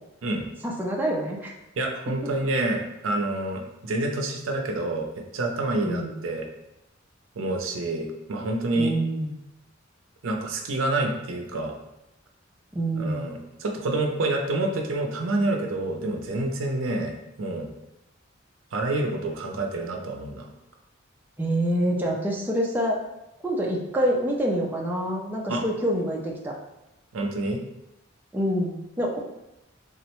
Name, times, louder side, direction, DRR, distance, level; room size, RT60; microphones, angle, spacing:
voice 1, 0.6-1.5 2.2-2.3 5.8-6.2 8.7-9.3 12.7-13.3 21.4-23.0 23.4-26.5 28.3-29.2, right 1 dB, 10° right, -3 dB, 0.4 m, -26 dB
voice 2, 1.8-6.4 7.4-8.9 10.2-11.7 12.9-17.7 18.7-20.5 25.5-25.6 27.1-27.6, right 2 dB, 80° right, 2 dB, 0.5 m, -28 dB
3.6 x 2.1 x 2.9 m, 0.92 s
head